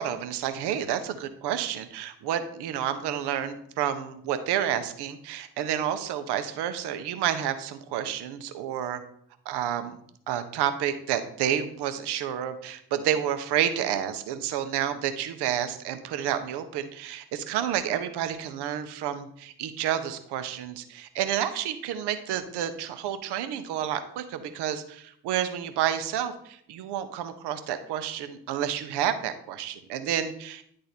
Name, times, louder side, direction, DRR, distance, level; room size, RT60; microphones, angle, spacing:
voice 1, 0.0-9.0 9.4-10.0 10.3-30.6, right 10 dB, 60° right, 10 dB, 1.0 m, -30 dB
10.5 x 3.8 x 4.2 m, 0.67 s
figure-of-eight pair, 40°, 45 cm